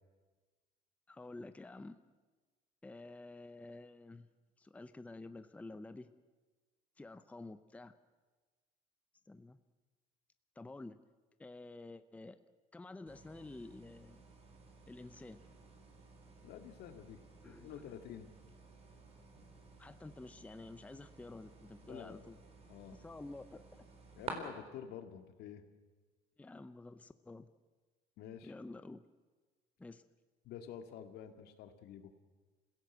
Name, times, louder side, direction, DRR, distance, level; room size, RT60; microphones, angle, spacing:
voice 1, 1.1-2.0 2.8-4.3 4.6-6.1 7.0-7.9 9.3-9.6 10.6-11.0 11.4-12.4 12.7-14.2 14.9-15.4 17.4-17.8 19.8-22.4 22.9-23.8 26.4-27.5 28.4-29.0 29.8-30.0, left 2 dB, 10° left, 11 dB, 0.7 m, -50 dB
sound 1, 13.1-24.3, right 4 dB, 40° right, 4.1 m, -54 dB
voice 2, 16.4-18.3 21.8-22.2 22.7-23.0 24.1-25.6 28.2-28.5 30.4-32.1, left 9 dB, 75° left, 7 dB, 2.2 m, -49 dB
27.5 x 16.5 x 8.1 m, 1.3 s
cardioid pair, 140°, 17 cm